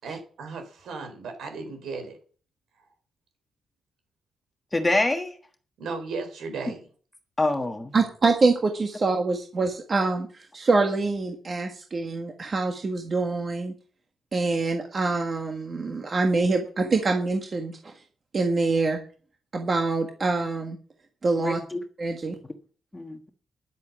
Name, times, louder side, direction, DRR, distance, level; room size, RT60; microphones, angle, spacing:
voice 1, 0.0-2.2 5.8-6.8, right 4 dB, 85° right, 4.5 m, -35 dB
voice 2, 4.7-5.4 7.4-7.9 21.4-21.8 22.9-23.3, left 2 dB, 15° left, 1.4 m, -25 dB
voice 3, 7.9-13.7 14.3-17.9 18.3-19.0 19.5-20.8 21.2-21.6 22.0-22.4, right 3 dB, 40° right, 1.6 m, -25 dB
10.5 x 8.3 x 7.2 m
cardioid pair, 115°, 0 cm